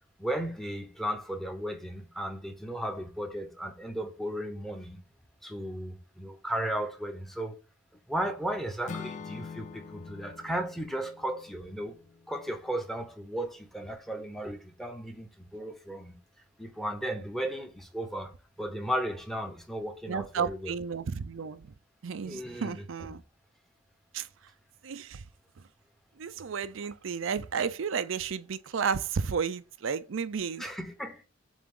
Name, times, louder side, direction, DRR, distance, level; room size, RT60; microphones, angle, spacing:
voice 1, 0.2-5.0 5.4-7.5 8.1-11.9 12.3-16.1 16.6-20.8 22.2-23.1 30.6-31.2, right 1 dB, ahead, 0.9 m, -35 dB
Acoustic guitar / Strum, 8.9-13.0, left 5 dB, 40° left, 0.4 m, -45 dB
voice 2, 20.1-21.7 22.0-23.2 24.1-24.3 24.8-25.2 26.2-30.6, right 6 dB, 75° right, 0.5 m, -32 dB
7.3 x 3.4 x 3.8 m
head